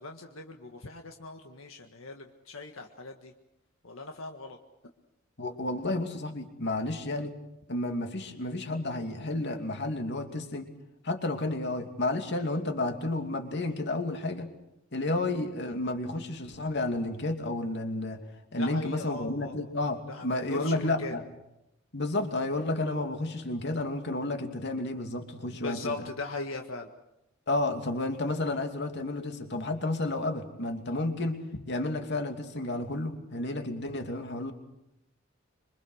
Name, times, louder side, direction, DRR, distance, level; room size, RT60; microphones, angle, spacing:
voice 1, 0.0-3.3 3.8-4.6 18.6-19.5 20.1-21.1 25.5-26.9, left 2 dB, 85° left, 3 dB, 1.7 m, -39 dB
voice 2, 5.4-7.4 7.7-10.7 11.0-14.5 14.9-18.2 18.5-21.2 21.9-26.1 27.5-34.5, left 2 dB, 55° left, 5 dB, 2.7 m, -31 dB
26.5 x 24.0 x 6.5 m, 0.87 s
head